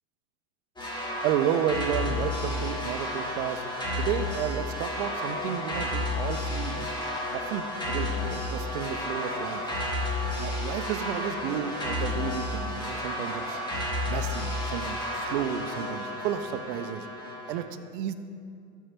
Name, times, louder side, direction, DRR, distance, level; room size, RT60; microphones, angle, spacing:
sound 1, 0.8-17.6, left 1 dB, 10° left, 1.7 m, -32 dB
voice 1, 1.2-3.6 4.0-6.9 7.3-9.6 10.4-13.6 14.0-17.7 17.9-18.1, right 9 dB, 60° right, 11 dB, 0.6 m, -32 dB
12.0 x 4.6 x 4.5 m, 2.4 s
hypercardioid pair, 90°, 41 cm